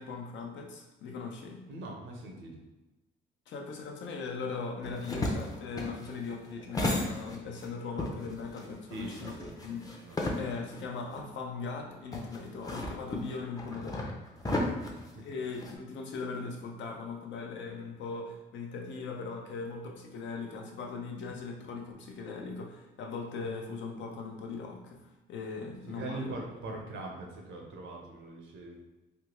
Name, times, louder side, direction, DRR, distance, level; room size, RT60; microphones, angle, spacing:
voice 1, 0.0-1.7 3.5-9.9 10.4-14.2 15.1-26.5, left 4 dB, 70° left, 2 dB, 0.6 m, -39 dB
voice 2, 1.7-2.6 8.9-9.5 10.0-10.4 14.5-15.2 25.9-28.8, right 2 dB, 75° right, 0 dB, 0.8 m, -42 dB
sound 1, 4.8-7.7 8.0-10.8 11.2-11.3 12.1-15.8, left 1 dB, 20° left, 0.6 m, -34 dB
3.4 x 2.2 x 2.9 m, 1.1 s
cardioid pair, 90°, 20 cm